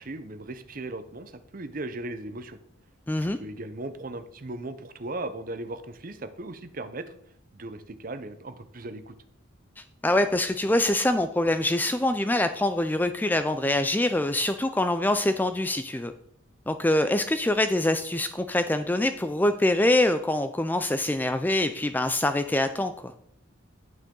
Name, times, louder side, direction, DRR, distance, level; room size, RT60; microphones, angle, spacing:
voice 1, 0.0-2.6 3.2-7.1 7.5-9.1, right 2 dB, 40° right, 11 dB, 0.7 m, -37 dB
voice 2, 3.1-3.4 9.8-16.1 16.7-23.1, left 1 dB, 10° left, 9 dB, 0.3 m, -24 dB
9.2 x 8.8 x 3.8 m, 0.71 s
head